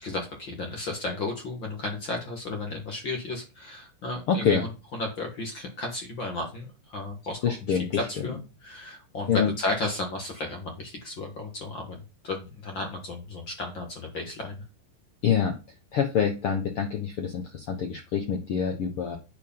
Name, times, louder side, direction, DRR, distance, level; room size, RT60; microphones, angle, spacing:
voice 1, 0.0-14.6, left 2 dB, 45° left, 2 dB, 1.8 m, -34 dB
voice 2, 4.3-4.6 7.4-8.0 9.3-9.5 15.2-15.6 15.9-19.2, left 7 dB, 85° left, 3 dB, 1.2 m, -26 dB
9.5 x 4.9 x 5.6 m, 0.30 s
omnidirectional pair, 4.2 m